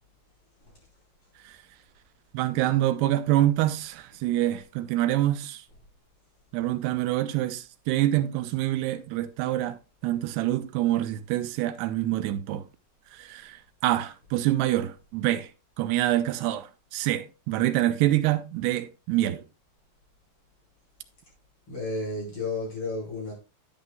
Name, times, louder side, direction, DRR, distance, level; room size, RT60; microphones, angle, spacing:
voice 1, 2.3-5.6 6.5-9.8 10.0-12.6 13.1-15.5 15.8-19.4, right 14 dB, 80° right, 2.5 m, -26 dB
voice 2, 21.7-23.3, left 2 dB, 30° left, 5.3 m, -32 dB
10.5 x 9.3 x 2.3 m
omnidirectional pair, 5.1 m